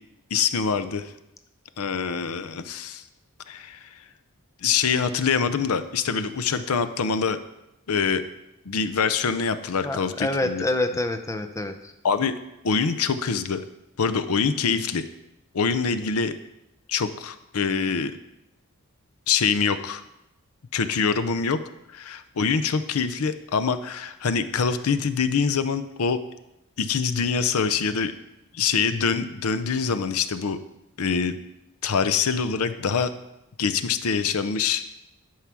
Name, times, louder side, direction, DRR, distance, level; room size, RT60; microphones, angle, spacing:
voice 1, 0.3-1.1 1.8-3.0 3.5-3.9 4.6-7.4 7.9-8.2 8.7-10.6 12.0-12.3 12.6-13.6 14.0-15.0 15.5-16.3 16.9-18.2 19.3-20.0 20.7-21.6 21.9-26.2 26.8-28.1 28.5-30.6 31.0-31.3 31.8-33.1 33.6-34.8, left 5 dB, 80° left, 11 dB, 0.6 m, -24 dB
voice 2, 9.8-11.9 16.2-16.3, left 2 dB, 15° left, 7 dB, 0.5 m, -27 dB
11.5 x 4.8 x 6.0 m, 0.90 s
head